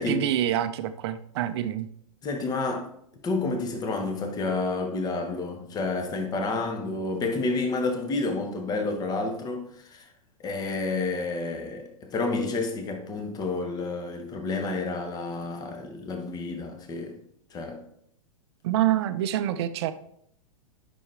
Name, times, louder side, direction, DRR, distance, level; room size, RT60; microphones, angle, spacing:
voice 1, 0.0-1.9 18.6-19.9, right 12 dB, 50° right, 0.7 m, -26 dB
voice 2, 2.2-2.9 3.2-10.0 10.4-17.2 17.5-17.8, left 3 dB, 20° left, 1.3 m, -30 dB
11.0 x 6.2 x 3.5 m
figure-of-eight pair, 105°, 18 cm